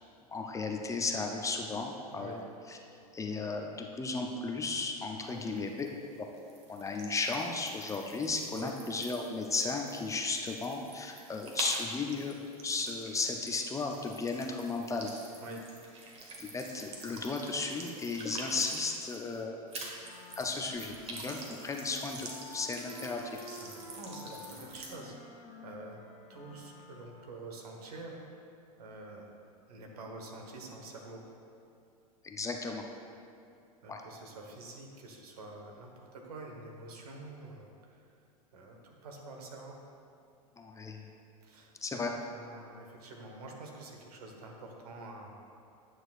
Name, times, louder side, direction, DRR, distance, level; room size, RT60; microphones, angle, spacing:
voice 1, 0.3-2.4 2.7-2.8 3.1-5.9 6.2-6.3 6.7-15.1 16.4-19.6 20.4-23.4 32.2-32.8 33.9-34.0 40.6-41.0 41.8-42.1, left 3 dB, 15° left, 2 dB, 0.5 m, -35 dB
voice 2, 2.1-2.4 5.3-5.5 8.5-8.7 15.4-15.6 21.2-21.4 23.4-26.0 26.3-28.2 28.8-29.3 29.7-31.2 33.8-38.0 38.5-39.8 41.4-45.3, right 2 dB, 75° right, 1 dB, 1.2 m, -47 dB
sound 1, 5.2-19.4 19.7-24.9, right 2 dB, 30° right, 1.3 m, -46 dB
Wind instrument woodwind instrument, 20.0-27.4, left 4 dB, 55° left, 1.4 m, -51 dB
9.8 x 6.2 x 2.5 m, 2.5 s
hypercardioid pair, 100°, 20 cm